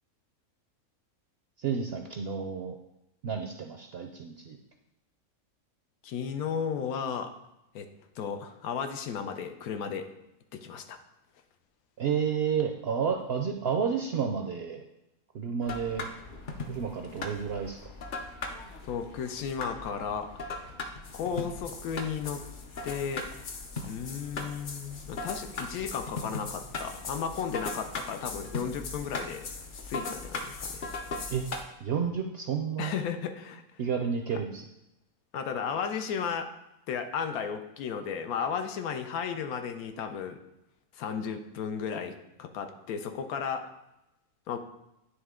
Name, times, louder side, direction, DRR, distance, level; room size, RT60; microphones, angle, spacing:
voice 1, 1.6-2.8 3.2-4.6 12.0-14.8 15.3-16.1 16.6-17.8 31.3-31.5 31.8-32.9 33.8-34.6, right 6 dB, 70° right, 3 dB, 0.6 m, -31 dB
voice 2, 6.0-7.3 7.7-7.9 8.2-10.1 10.5-11.0 18.8-20.3 20.6-20.7 21.1-22.4 22.8-23.3 23.9-29.4 29.9-30.8 32.8-33.6 34.3-34.4 35.3-36.5 36.9-40.4 40.9-43.7 44.5-44.6, left 7 dB, 90° left, 7 dB, 1.1 m, -34 dB
sound 1, 15.6-31.6, left 3 dB, 50° left, 0.6 m, -39 dB
9.7 x 3.3 x 3.6 m, 0.90 s
omnidirectional pair, 1.5 m